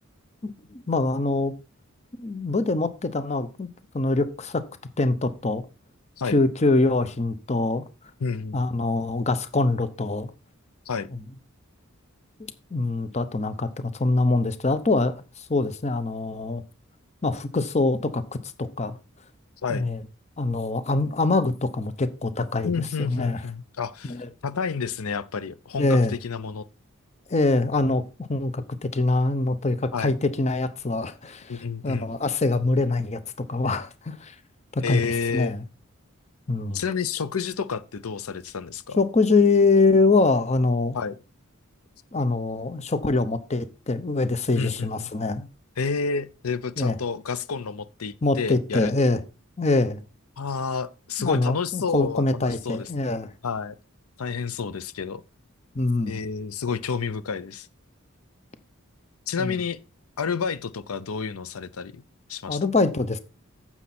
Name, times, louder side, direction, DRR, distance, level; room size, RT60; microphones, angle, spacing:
voice 1, 0.4-1.5 2.2-3.7 3.9-4.6 5.0-5.6 6.3-7.8 8.5-10.3 12.7-16.6 17.2-18.2 18.6-19.0 19.7-20.0 20.4-22.7 23.0-23.4 24.1-24.3 25.8-26.1 27.3-28.0 28.3-33.2 33.5-34.3 34.7-35.6 36.5-36.8 39.0-41.0 42.1-45.5 46.8-47.0 48.2-49.2 49.6-50.0 51.2-53.3 55.7-56.2 59.4-59.6 62.5-63.2, left 3 dB, 30° left, 0.8 m, -24 dB
voice 2, 8.2-8.6 10.9-11.1 19.6-19.9 22.6-24.2 24.4-26.6 29.9-30.1 31.5-32.2 34.8-35.5 36.7-39.0 40.9-41.2 44.6-44.9 45.8-48.9 50.4-52.9 53.4-53.7 54.2-55.2 56.1-57.7 59.3-59.8 60.2-62.0 62.3-62.6, left 5 dB, 90° left, 0.7 m, -30 dB
9.6 x 7.3 x 4.3 m
head